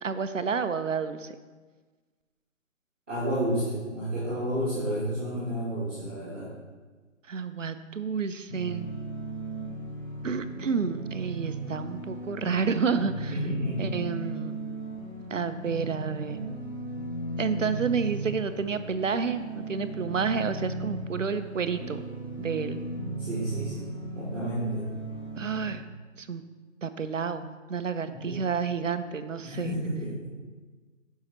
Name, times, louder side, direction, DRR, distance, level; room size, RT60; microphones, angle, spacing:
voice 1, 0.0-1.3 7.3-8.9 10.2-13.3 13.8-14.5 15.3-16.5 17.4-22.1 22.4-22.8 25.4-25.8 26.2-26.4 26.8-29.7, right 5 dB, 70° right, 10 dB, 0.6 m, -30 dB
voice 2, 3.1-6.5 13.3-13.8 23.2-23.9 24.1-24.9 28.1-28.4 29.4-30.1, equal, 10° right, -17 dB, 1.2 m, -31 dB
sound 1, 8.5-25.8, right 2 dB, 85° left, 2.1 m, -36 dB
9.4 x 5.6 x 3.0 m, 1.3 s
figure-of-eight pair, 160°, 39 cm